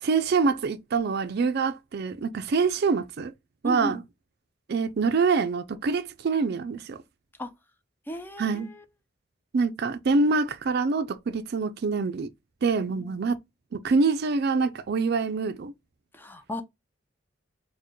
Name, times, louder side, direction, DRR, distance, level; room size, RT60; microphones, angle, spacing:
voice 1, 0.0-3.3 3.6-4.0 4.7-7.0 8.4-8.7 9.5-12.3 12.6-13.4 13.7-15.7, right 4 dB, 55° right, 0.4 m, -25 dB
voice 2, 3.6-4.0 7.4-7.5 8.1-8.8 12.9-13.2 16.1-16.6, equal, 10° left, 0.4 m, -35 dB
4.4 x 2.2 x 3.0 m
head